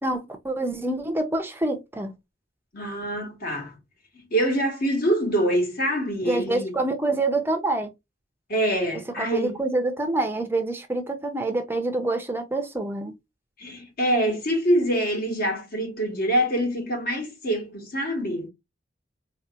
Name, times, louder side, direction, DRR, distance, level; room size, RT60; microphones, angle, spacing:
voice 1, 0.0-2.1 6.3-7.9 9.2-13.2, right 2 dB, 10° right, 0.5 m, -26 dB
voice 2, 2.7-3.7 4.2-6.7 8.5-9.6 13.6-18.5, right 1 dB, 55° left, 1.4 m, -25 dB
3.9 x 2.8 x 2.4 m
head